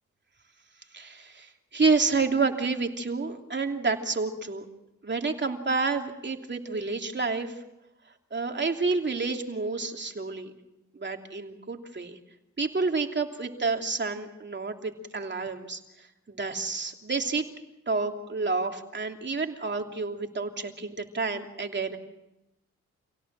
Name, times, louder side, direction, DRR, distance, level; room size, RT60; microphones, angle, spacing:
voice 1, 0.9-4.6 5.0-7.5 8.3-10.5 10.9-12.2 12.6-15.8 16.3-17.5 17.9-22.0, right 4 dB, 40° right, 3 dB, 3.0 m, -29 dB
27.5 x 17.5 x 7.5 m, 0.93 s
cardioid pair, 55°, 29 cm